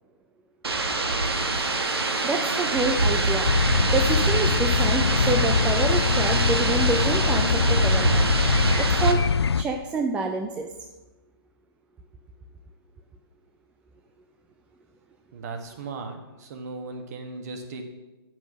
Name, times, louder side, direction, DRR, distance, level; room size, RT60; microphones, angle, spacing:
sound 1, 0.6-9.1, right 2 dB, 70° right, 1.4 m, -25 dB
voice 1, 2.2-3.5 3.9-8.3 8.8-9.3 9.6-10.7, right 3 dB, 10° right, 4 dB, 0.3 m, -27 dB
sound 2, 3.4-9.6, left 5 dB, 85° left, 0.4 m, -23 dB
voice 2, 15.3-17.8, right 3 dB, 40° right, 5 dB, 1.4 m, -37 dB
8.8 x 6.2 x 6.1 m, 1.1 s
figure-of-eight pair, 135°, 13 cm